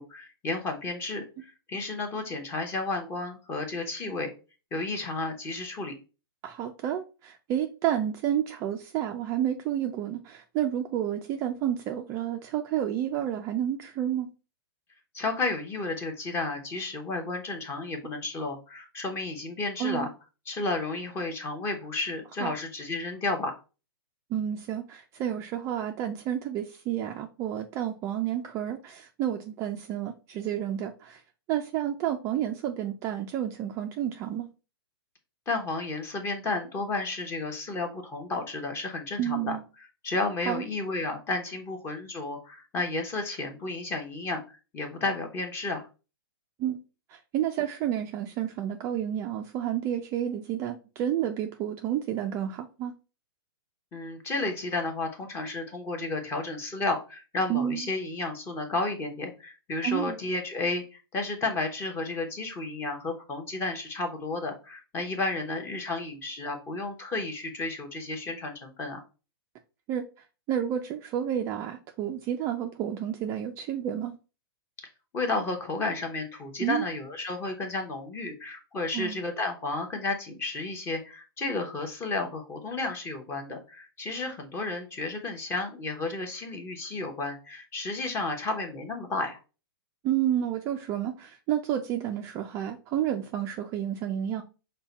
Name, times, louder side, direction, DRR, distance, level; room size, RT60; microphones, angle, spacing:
voice 1, 0.0-4.3 4.7-5.9 15.1-20.1 20.5-23.6 35.5-39.6 40.0-45.9 53.9-69.0 75.1-89.4, left 3 dB, 20° left, 4 dB, 0.9 m, -32 dB
voice 2, 6.4-14.3 19.8-20.1 22.4-22.5 24.3-31.2 31.5-34.5 39.2-39.6 40.5-40.6 46.6-46.8 47.1-52.9 57.5-57.9 59.8-60.2 69.9-70.0 70.5-74.1 76.6-76.8 78.9-79.2 90.0-94.4, right 10 dB, 20° right, 4 dB, 0.3 m, -30 dB
5.4 x 2.2 x 4.0 m, 0.33 s
hypercardioid pair, 150°, 13 cm